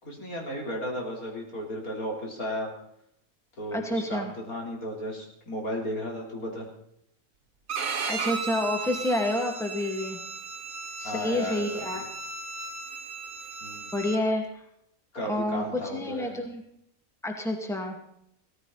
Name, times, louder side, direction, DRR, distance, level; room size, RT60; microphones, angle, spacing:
voice 1, 0.0-2.7 3.6-6.7 11.0-11.9 13.6-14.1 15.1-16.4, equal, 75° left, -1 dB, 4.5 m, -34 dB
voice 2, 3.7-4.3 8.1-10.2 11.0-12.0 13.9-14.4 15.2-16.6 17.2-18.0, left 1 dB, ahead, 2 dB, 2.3 m, -29 dB
Bowed string instrument, 7.7-14.2, right 5 dB, 70° right, 1.8 m, -35 dB
17.0 x 15.0 x 4.2 m, 0.72 s
omnidirectional pair, 1.5 m